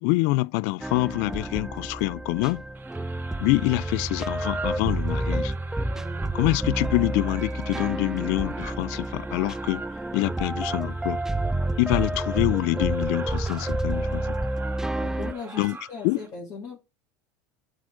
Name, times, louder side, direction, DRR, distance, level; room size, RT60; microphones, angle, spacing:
voice 1, 0.0-2.6 3.4-5.5 6.3-9.8 10.1-11.2 11.8-14.4 15.6-15.8 16.0-16.2, left 23 dB, 65° left, 0.4 m, -26 dB
sound 1, 0.8-15.3, right 1 dB, 5° right, 0.5 m, -29 dB
sound 2, 2.7-16.3, right 5 dB, 25° right, 2.0 m, -44 dB
voice 2, 5.9-6.4 15.0-16.8, left 4 dB, 40° left, 2.7 m, -39 dB
7.6 x 5.1 x 3.5 m
supercardioid pair, 105°, 9 cm